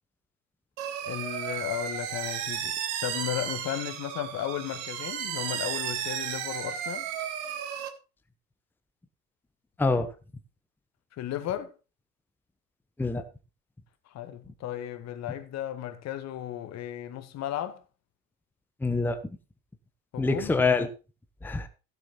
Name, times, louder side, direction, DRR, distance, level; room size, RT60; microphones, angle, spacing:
sound 1, 0.8-7.9, right 9 dB, 45° right, 1.8 m, -34 dB
voice 1, 1.0-2.8 3.0-7.1 11.1-11.7 14.1-17.8 20.1-20.6, left 11 dB, 30° left, 1.7 m, -35 dB
voice 2, 9.8-10.1 13.0-13.2 18.8-19.2 20.2-20.9 21.4-21.7, left 3 dB, 5° left, 1.0 m, -25 dB
16.0 x 6.8 x 4.3 m
figure-of-eight pair, 85°, 49 cm